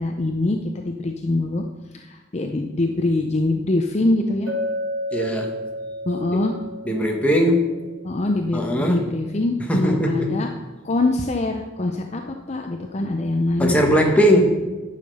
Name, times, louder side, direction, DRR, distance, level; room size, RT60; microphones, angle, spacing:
voice 1, 0.0-1.6 1.9-4.5 6.1-6.6 8.0-10.5 10.8-13.8, left 2 dB, 35° left, 3 dB, 0.5 m, -24 dB
Chink clink, 4.5-8.5, left 1 dB, 90° right, 2.0 m, -31 dB
voice 2, 5.1-5.5 6.8-7.7 8.5-9.1 9.7-10.4 13.6-14.5, equal, 5° left, 1 dB, 1.3 m, -19 dB
9.6 x 6.6 x 5.4 m, 1.2 s
head